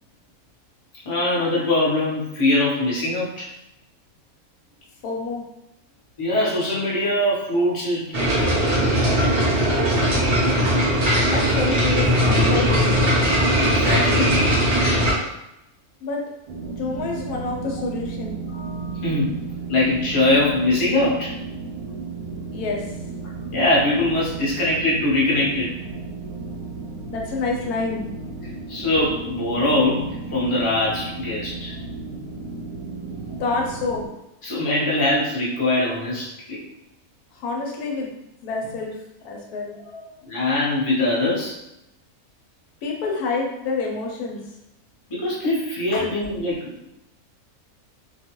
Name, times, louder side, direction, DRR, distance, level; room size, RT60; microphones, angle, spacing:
voice 1, 1.0-3.5 6.2-8.2 13.6-14.4 18.5-19.4 19.7-21.3 23.5-25.7 28.7-31.7 34.4-36.6 40.2-41.5 45.1-46.9, left 2 dB, 25° left, -7 dB, 0.7 m, -22 dB
voice 2, 5.0-5.4 11.3-12.9 16.0-16.2 16.6-18.4 22.5-22.9 27.1-28.0 33.2-34.1 37.3-38.1 38.4-40.1 42.8-44.4 45.9-46.1, left 3 dB, 80° left, 0 dB, 1.1 m, -28 dB
sound 1, 8.1-15.1, equal, 35° right, 0.6 m, -19 dB
sound 2, 16.5-34.1, right 3 dB, 90° right, 1.1 m, -34 dB
2.6 x 2.3 x 2.9 m, 0.88 s
omnidirectional pair, 1.6 m